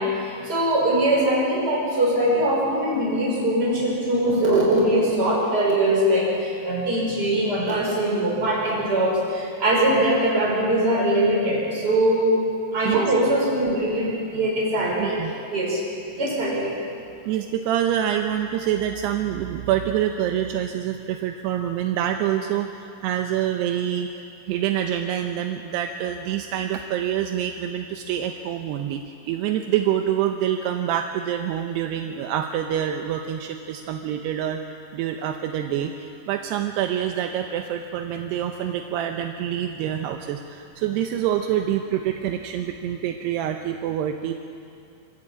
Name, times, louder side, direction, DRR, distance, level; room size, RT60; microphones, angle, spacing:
voice 1, 0.0-12.4 12.7-15.8 16.2-16.8, right 1 dB, 20° right, -4 dB, 5.9 m, -22 dB
voice 2, 15.0-15.3 17.3-24.1 24.5-34.6 34.9-44.3, right 10 dB, 80° right, 4 dB, 2.4 m, -26 dB
26.0 x 14.0 x 8.7 m, 2.6 s
omnidirectional pair, 5.6 m